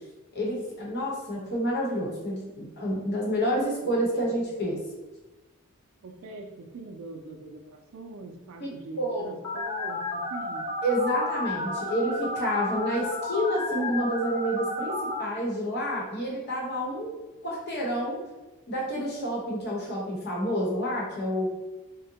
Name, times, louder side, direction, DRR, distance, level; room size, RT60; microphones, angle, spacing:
voice 1, 0.3-4.8 8.6-8.7 9.0-9.3 10.8-17.1 17.4-18.2 18.7-21.5, equal, 50° left, -3 dB, 0.9 m, -29 dB
voice 2, 3.8-4.3 6.0-10.7, right 3 dB, 65° right, 3 dB, 0.4 m, -43 dB
Telephone, 9.4-15.2, left 2 dB, 85° left, 0.9 m, -32 dB
3.6 x 2.1 x 2.7 m, 1.1 s
head